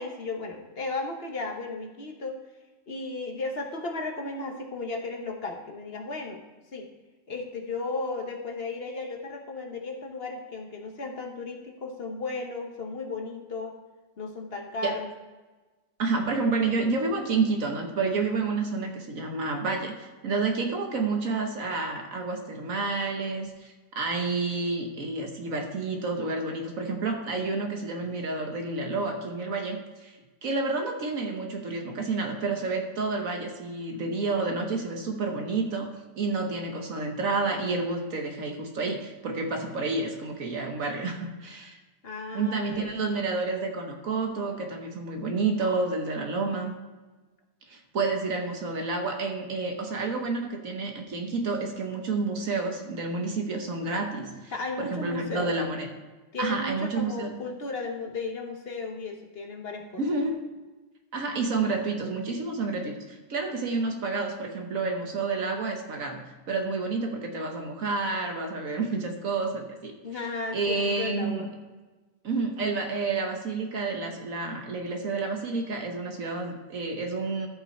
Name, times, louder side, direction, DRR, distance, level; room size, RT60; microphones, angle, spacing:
voice 1, 0.0-2.4 2.9-6.4 6.7-6.9 7.3-13.7 14.2-15.1 42.0-42.9 54.5-55.5 56.3-60.0 70.0-71.5, left 3 dB, 40° left, 3 dB, 1.1 m, -35 dB
voice 2, 16.0-41.8 42.3-46.7 47.7-54.5 54.8-55.9 56.4-57.4 60.0-60.4 61.1-69.9 70.5-71.5 72.2-77.5, right 3 dB, 60° right, 3 dB, 1.4 m, -29 dB
13.5 x 5.5 x 4.3 m, 1.2 s
omnidirectional pair, 1.7 m